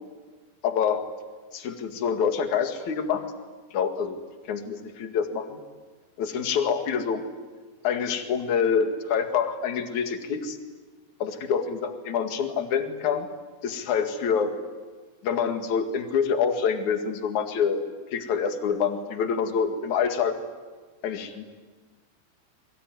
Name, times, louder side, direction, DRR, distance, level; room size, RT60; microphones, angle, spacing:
voice 1, 0.6-1.0 1.5-3.2 3.7-4.2 4.5-5.6 6.2-7.2 7.8-10.6 11.2-13.3 13.6-14.5 15.2-17.8 18.1-20.4 21.0-21.4, left 7 dB, 50° left, 7 dB, 3.0 m, -26 dB
27.5 x 23.0 x 9.5 m, 1.4 s
omnidirectional pair, 4.9 m